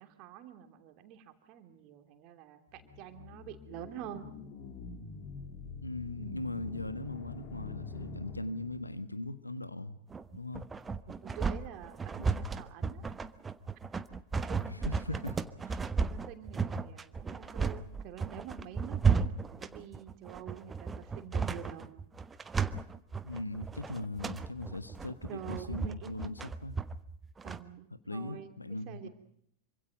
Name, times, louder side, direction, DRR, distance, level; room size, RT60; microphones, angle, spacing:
voice 1, 0.0-4.3 6.2-6.7 11.1-13.3 14.5-15.3 16.1-22.0 25.3-26.2 27.4-29.1, right 10 dB, 40° right, 6 dB, 3.0 m, -47 dB
sound 1, 2.7-9.1, left 5 dB, 40° left, 3.6 m, -45 dB
voice 2, 5.8-10.0 10.3-10.7 12.5-12.7 14.6-15.3 23.2-26.8 28.1-29.1, left 2 dB, 85° left, 12 dB, 1.5 m, -39 dB
sound 2, 10.1-27.6, right 5 dB, 15° right, 1.0 m, -34 dB
26.5 x 25.0 x 5.2 m, 0.69 s
figure-of-eight pair, 90°, 0 cm